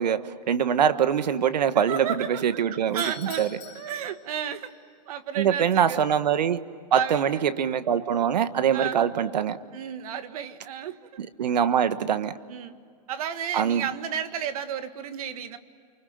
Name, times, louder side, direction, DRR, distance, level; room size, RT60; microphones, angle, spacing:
voice 1, 0.0-3.0 3.4-3.5 5.4-6.6 6.9-9.6 11.2-12.3 13.5-13.9, right 8 dB, 80° right, 1.4 m, -23 dB
voice 2, 1.7-4.7 5.1-6.0 6.5-6.6 6.9-7.4 8.7-9.0 9.7-11.0 12.5-12.7 13.1-15.6, right 8 dB, 60° right, 1.8 m, -33 dB
Doorbell, 2.8-4.8, left 7 dB, 85° left, 4.6 m, -45 dB
30.0 x 24.5 x 7.9 m
hypercardioid pair, 135°, 21 cm